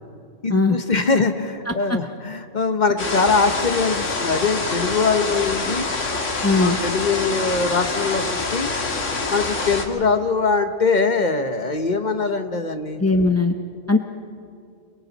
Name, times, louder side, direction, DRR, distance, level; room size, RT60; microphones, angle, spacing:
voice 1, 0.4-5.9 6.6-8.7 9.3-13.0, left 4 dB, 40° left, 8 dB, 1.1 m, -22 dB
voice 2, 1.7-2.0 6.4-6.8 13.0-13.5 13.9-14.0, left 3 dB, 20° left, 5 dB, 0.5 m, -19 dB
sound 1, 3.0-9.9, left 3 dB, 70° left, 2.1 m, -26 dB
29.0 x 22.5 x 4.1 m, 2.4 s
omnidirectional pair, 1.3 m